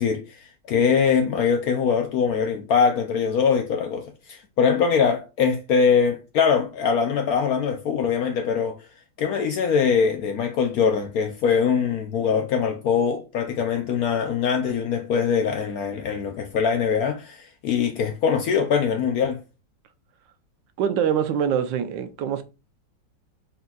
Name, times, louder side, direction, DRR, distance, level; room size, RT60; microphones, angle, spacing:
voice 1, 0.0-8.7 9.2-19.4, left 6 dB, 70° left, 0.8 m, -22 dB
voice 2, 20.8-22.4, right 8 dB, 85° right, 1.3 m, -24 dB
4.3 x 3.8 x 2.3 m
omnidirectional pair, 2.0 m